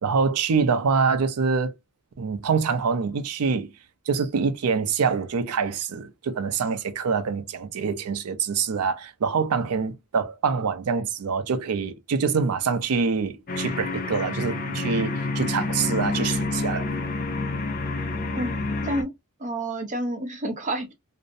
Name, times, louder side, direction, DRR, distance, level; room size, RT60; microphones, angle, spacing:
voice 1, 0.0-1.7 2.2-3.7 4.1-16.9, right 5 dB, 80° right, 0.5 m, -25 dB
sound 1, 13.5-19.0, left 3 dB, 40° left, 0.5 m, -28 dB
voice 2, 19.4-20.9, right 1 dB, 35° right, 0.6 m, -29 dB
2.6 x 2.0 x 2.5 m
head